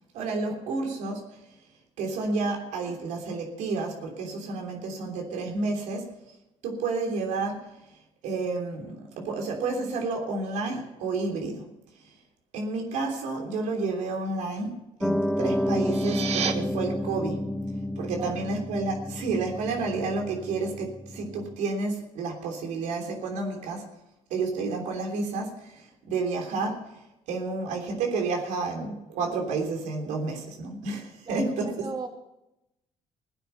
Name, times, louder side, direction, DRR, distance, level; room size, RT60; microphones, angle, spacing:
voice 1, 0.1-1.2 2.0-6.1 6.6-7.7 8.2-11.7 12.5-17.5 18.0-23.9 24.3-27.0 27.3-31.8, right 3 dB, 80° right, 2 dB, 3.2 m, -30 dB
Piano, 15.0-21.6, left 1 dB, ahead, 0.5 m, -30 dB
sound 1, 15.7-16.5, right 7 dB, 60° right, 1.3 m, -30 dB
voice 2, 18.2-18.6 31.2-32.1, right 4 dB, 35° right, 2 dB, 2.4 m, -38 dB
17.0 x 9.3 x 5.8 m, 0.89 s
cardioid pair, 85°, 12 cm